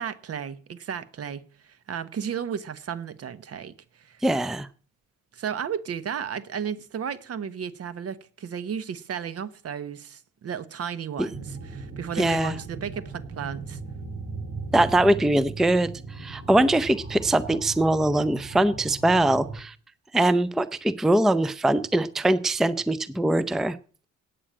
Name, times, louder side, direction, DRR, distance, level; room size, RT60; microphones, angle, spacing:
voice 1, 0.0-4.2 5.3-13.8, right 8 dB, 50° right, 1.1 m, -34 dB
voice 2, 4.2-4.7 11.2-11.3 12.2-12.5 14.7-15.9 16.2-19.7 20.1-23.8, right 1 dB, ahead, 0.5 m, -22 dB
sound 1, 11.3-19.6, right 3 dB, 25° right, 3.6 m, -38 dB
8.9 x 8.7 x 8.7 m
cardioid pair, 90°, 30 cm